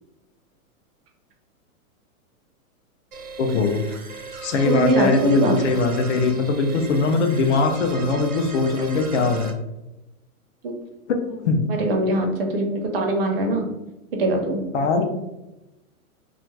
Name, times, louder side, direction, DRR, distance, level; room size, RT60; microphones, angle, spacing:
sound 1, 3.1-9.5, right 4 dB, 85° right, 0.8 m, -37 dB
voice 1, 3.4-3.8 4.4-9.5 11.1-11.2 11.4-11.6 14.7-15.0, left 3 dB, 55° left, 5 dB, 0.5 m, -21 dB
voice 2, 4.6-5.6 10.6-10.7 11.7-13.6 14.2-14.6, right 1 dB, 45° right, 2 dB, 0.5 m, -22 dB
2.4 x 2.3 x 3.1 m, 0.96 s
hypercardioid pair, 155°, 44 cm